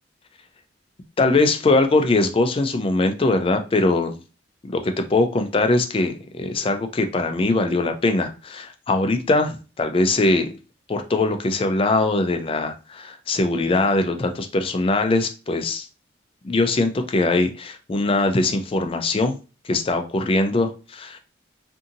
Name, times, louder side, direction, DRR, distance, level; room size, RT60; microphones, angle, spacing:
voice 1, 1.2-4.2 4.7-10.5 10.9-15.9 16.4-19.4 19.6-21.2, left 2 dB, 30° left, 6 dB, 0.3 m, -21 dB
2.6 x 2.6 x 2.5 m, 0.33 s
head